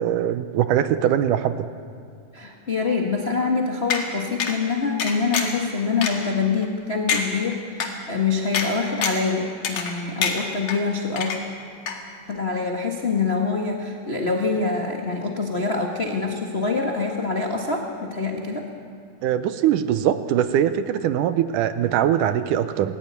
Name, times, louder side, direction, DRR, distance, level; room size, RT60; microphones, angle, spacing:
voice 1, 0.0-1.7 19.2-23.0, right 10 dB, 75° right, 11 dB, 2.1 m, -22 dB
voice 2, 2.3-11.3 12.3-18.7, left 4 dB, 85° left, 0 dB, 0.5 m, -25 dB
sound 1, 3.9-4.0 4.4-4.5 5.0-5.6 6.0-6.1 6.6-6.7 7.1-7.2 7.8-7.9 8.5-8.7 9.0-9.3 9.6-9.9 10.2-10.8 11.2-11.6 11.9-12.0, left 6 dB, 55° left, 3.0 m, -25 dB
19.5 x 15.0 x 9.6 m, 2.5 s
omnidirectional pair, 4.0 m